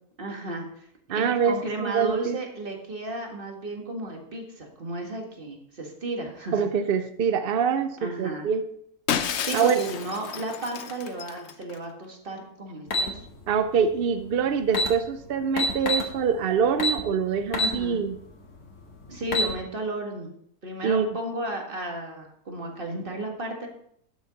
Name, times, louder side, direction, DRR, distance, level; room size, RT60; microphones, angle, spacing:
voice 1, 0.2-0.9 1.1-6.7 8.0-8.5 9.4-13.2 17.6-18.0 19.1-20.3 20.6-23.7, right 2 dB, 35° right, 2 dB, 1.9 m, -33 dB
voice 2, 1.1-2.4 6.5-8.6 9.5-9.8 13.5-18.2 20.8-21.1, right 6 dB, 65° right, 9 dB, 0.5 m, -25 dB
Shatter, 9.1-11.8, left 8 dB, 60° left, 0.8 m, -31 dB
sound 1, 12.9-13.1 14.3-14.4 14.7-14.9 15.6-16.1 16.8-17.0 17.5-17.8 18.2-18.3 19.1-19.5, left 2 dB, 85° left, 2.1 m, -24 dB
12.5 x 7.2 x 3.9 m, 0.68 s
omnidirectional pair, 1.6 m